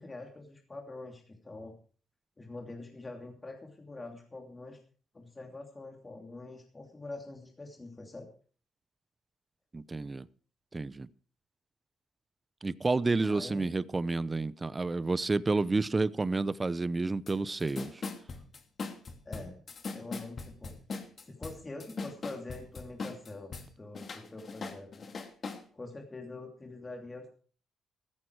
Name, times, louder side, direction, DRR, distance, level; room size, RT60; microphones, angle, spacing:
voice 1, 0.0-1.7 2.4-4.8 5.1-8.3 13.2-13.7 19.2-19.5 19.9-20.7 21.2-25.1 25.7-27.3, left 2 dB, 25° left, 2.9 m, -45 dB
voice 2, 9.7-10.3 10.7-11.1 12.6-17.9, right 3 dB, 25° right, 0.6 m, -30 dB
sound 1, 17.3-17.4 17.6-23.7 23.9-25.6, left 4 dB, 45° left, 2.6 m, -40 dB
14.5 x 14.0 x 4.7 m
cardioid pair, 90°, 0 cm